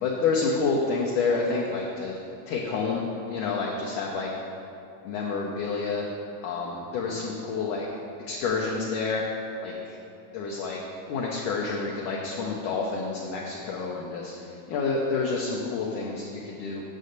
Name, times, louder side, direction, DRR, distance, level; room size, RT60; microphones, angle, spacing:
voice 1, 0.0-2.2 2.5-3.0 3.3-4.3 5.1-6.1 6.4-7.9 8.3-9.2 9.6-10.0 10.3-10.8 11.1-14.3 14.7-16.8, left 4 dB, 80° left, -2 dB, 1.8 m, -28 dB
6.6 x 6.3 x 6.5 m, 2.6 s
omnidirectional pair, 4.4 m